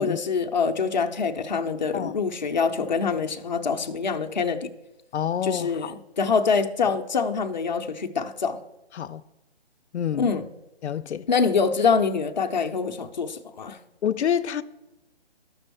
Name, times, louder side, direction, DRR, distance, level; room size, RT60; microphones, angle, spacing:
voice 1, 0.0-4.7 5.4-8.6 10.2-10.4 11.3-13.8, left 5 dB, 45° left, 0.6 m, -25 dB
voice 2, 5.1-5.9 8.9-9.2 9.9-10.3 10.8-11.3 14.0-14.6, left 9 dB, 90° left, 0.5 m, -27 dB
12.0 x 6.1 x 3.4 m
hypercardioid pair, 175°, 33 cm